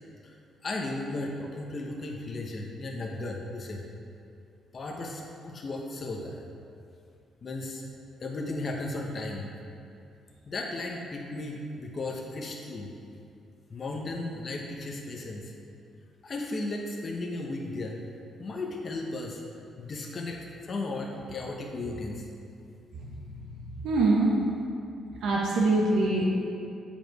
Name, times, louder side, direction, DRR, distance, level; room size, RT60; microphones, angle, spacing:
voice 1, 0.6-3.9 4.7-6.4 7.4-7.8 8.2-9.5 10.5-12.9 13.7-15.5 16.2-18.0 18.4-19.4 19.8-22.3, left 2 dB, 40° left, 1 dB, 0.9 m, -35 dB
voice 2, 23.0-23.3 23.8-24.4 25.2-26.2, right 2 dB, 85° right, -4 dB, 1.0 m, -24 dB
7.2 x 5.2 x 4.8 m, 2.5 s
cardioid pair, 90°, 0 cm